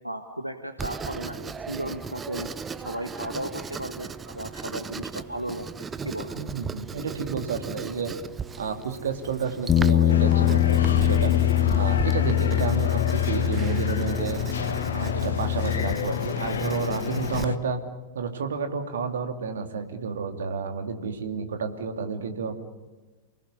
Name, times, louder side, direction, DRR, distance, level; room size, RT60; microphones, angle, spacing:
voice 1, 0.0-2.5 2.8-5.7 6.0-6.3, right 1 dB, 90° right, 7 dB, 1.5 m, -35 dB
Writing, 0.8-17.4, right 5 dB, 20° right, 0.9 m, -38 dB
voice 2, 6.4-8.1 8.6-11.5 11.7-13.0 13.3-14.4 14.9-17.8 18.1-22.5, right 5 dB, 65° right, 7 dB, 2.8 m, -30 dB
Bass guitar, 9.7-15.9, left 14 dB, 20° left, 0.8 m, -23 dB
sound 1, 10.1-17.6, left 7 dB, 65° left, 1.6 m, -29 dB
29.0 x 20.0 x 9.8 m, 1.2 s
figure-of-eight pair, 90°, 0 cm